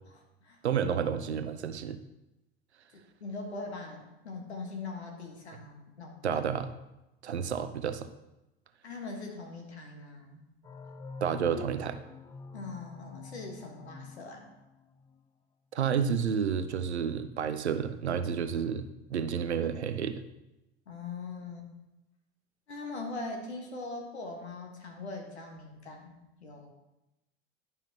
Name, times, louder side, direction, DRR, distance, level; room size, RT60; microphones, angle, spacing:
voice 1, 0.6-2.0 6.2-6.7 7.2-8.1 11.2-12.0 15.7-18.8 19.1-20.2, right 7 dB, 80° right, 10 dB, 0.6 m, -30 dB
voice 2, 2.9-6.5 8.8-10.4 12.5-14.5 20.9-21.7 22.7-26.7, left 3 dB, 75° left, 2 dB, 1.6 m, -41 dB
sound 1, 10.6-15.2, left 4 dB, 15° left, 0.5 m, -46 dB
11.0 x 5.7 x 2.9 m, 0.95 s
figure-of-eight pair, 75°, 33 cm